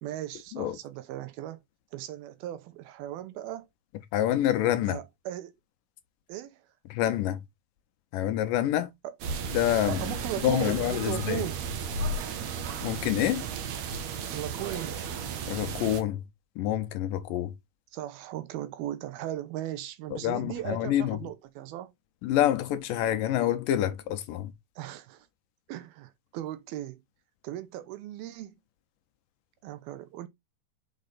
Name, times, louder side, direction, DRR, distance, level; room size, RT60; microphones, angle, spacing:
voice 1, 0.0-1.6 1.9-3.7 4.9-5.6 6.3-6.6 9.0-9.2 9.9-11.7 14.3-15.0 17.9-21.9 24.8-25.3 25.7-27.0 27.4-28.5 29.6-30.3, right 13 dB, 85° right, 2.7 m, -37 dB
voice 2, 4.1-5.0 6.9-7.4 8.1-8.9 9.5-10.0 10.4-11.4 12.8-13.5 15.5-16.2 16.6-17.5 20.1-21.2 22.2-24.5, left 12 dB, 80° left, 2.1 m, -27 dB
sound 1, 9.2-16.0, right 5 dB, 65° right, 1.9 m, -34 dB
5.8 x 5.0 x 4.0 m
omnidirectional pair, 4.3 m